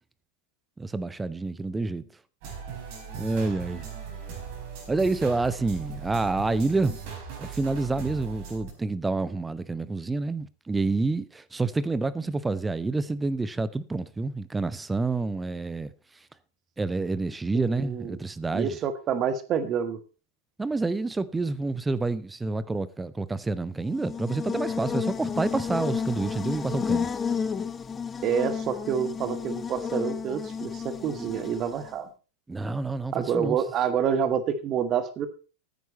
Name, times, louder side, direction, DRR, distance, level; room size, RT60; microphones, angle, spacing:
voice 1, 0.8-2.0 3.2-3.9 4.9-7.0 7.4-15.9 16.8-18.8 20.6-27.1 32.5-33.6, right 3 dB, 10° right, 0.8 m, -28 dB
sound 1, 2.4-8.7, right 6 dB, 45° right, 4.6 m, -39 dB
voice 2, 17.5-18.2 18.5-20.0 28.2-32.1 33.1-35.3, right 8 dB, 30° right, 1.5 m, -28 dB
Buzz, 23.8-32.0, left 6 dB, 20° left, 0.8 m, -31 dB
15.0 x 9.5 x 4.1 m
figure-of-eight pair, 90°, 0 cm